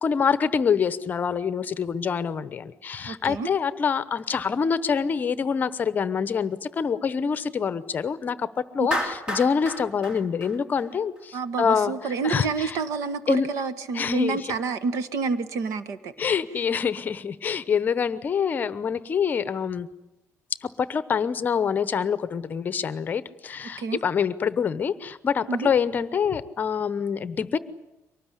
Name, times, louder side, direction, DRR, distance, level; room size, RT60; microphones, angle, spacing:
voice 1, 0.0-8.5 8.7-11.9 12.2-12.8 13.3-13.5 13.9-14.5 16.2-19.9 20.6-27.6, left 6 dB, 30° left, 14 dB, 0.9 m, -26 dB
voice 2, 3.0-3.5 8.8-8.9 11.3-16.1 23.8-24.0 25.5-25.7, right 4 dB, 65° right, 12 dB, 1.6 m, -28 dB
Clapping, 8.9-11.2, equal, 15° right, 2.4 m, -31 dB
24.0 x 19.0 x 9.9 m, 0.93 s
cardioid pair, 160°, 6 cm